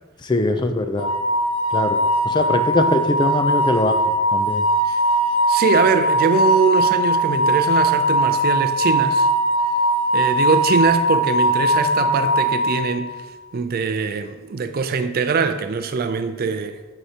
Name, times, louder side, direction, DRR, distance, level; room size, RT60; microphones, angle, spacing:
voice 1, 0.2-1.1 1.7-2.0 2.2-4.0 4.3-4.7, left 2 dB, 20° left, 0.4 m, -21 dB
sound 1, 1.0-13.2, right 1 dB, 65° left, 0.8 m, -20 dB
voice 2, 5.5-9.3 10.1-13.2 13.5-16.8, right 5 dB, 45° right, 0.4 m, -22 dB
8.0 x 5.7 x 2.8 m
head